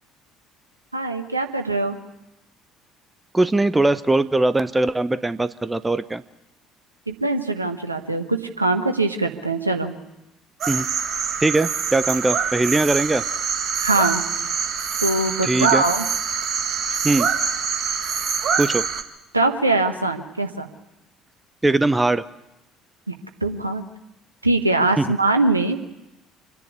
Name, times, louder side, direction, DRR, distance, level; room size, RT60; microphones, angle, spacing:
voice 1, 0.9-2.0 7.1-9.9 13.8-14.2 15.0-16.0 19.3-20.7 23.1-23.2 23.4-23.8 24.4-25.8, right 2 dB, 90° right, 5 dB, 1.2 m, -22 dB
voice 2, 3.3-6.2 10.7-10.9 11.4-13.2 15.4-15.8 17.0-17.3 18.6-18.8 21.6-22.3 25.0-25.1, right 2 dB, 15° right, 14 dB, 0.7 m, -20 dB
sound 1, 10.6-19.0, right 6 dB, 45° right, 1.8 m, -25 dB
26.5 x 10.5 x 9.8 m, 0.93 s
figure-of-eight pair, 55°, 0 cm